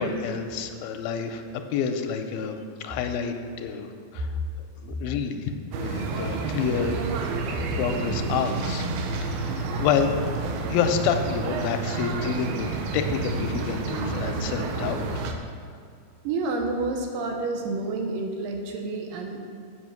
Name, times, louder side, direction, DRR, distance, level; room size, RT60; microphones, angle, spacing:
voice 1, 0.0-1.4 1.7-4.3 4.8-5.5 5.7-7.0 7.5-8.9 9.2-10.1 10.7-15.2, left 7 dB, 85° left, 6 dB, 2.5 m, -28 dB
sound 1, 5.7-15.3, right 4 dB, 90° right, 2.7 m, -29 dB
voice 2, 16.2-19.5, right 3 dB, 75° right, 2 dB, 2.5 m, -29 dB
8.1 x 5.9 x 7.8 m, 2.3 s
omnidirectional pair, 4.3 m